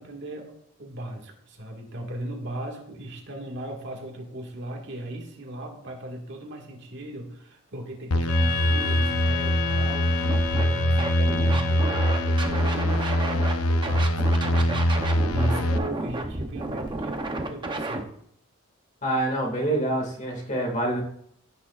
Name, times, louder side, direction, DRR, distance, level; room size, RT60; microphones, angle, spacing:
voice 1, 0.0-18.1, right 1 dB, 55° right, 0 dB, 1.9 m, -37 dB
sound 1, 8.1-15.8, equal, 85° left, 0.6 m, -23 dB
Wind instrument woodwind instrument, 8.3-12.7, left 5 dB, 60° left, 1.9 m, -32 dB
Scratching (performance technique), 10.3-10.6 11.0-13.5 13.8-18.0, right 2 dB, 20° right, 0.8 m, -31 dB
voice 2, 19.0-21.0, right 1 dB, 35° left, 0 dB, 2.1 m, -26 dB
15.5 x 6.7 x 2.5 m, 0.68 s
head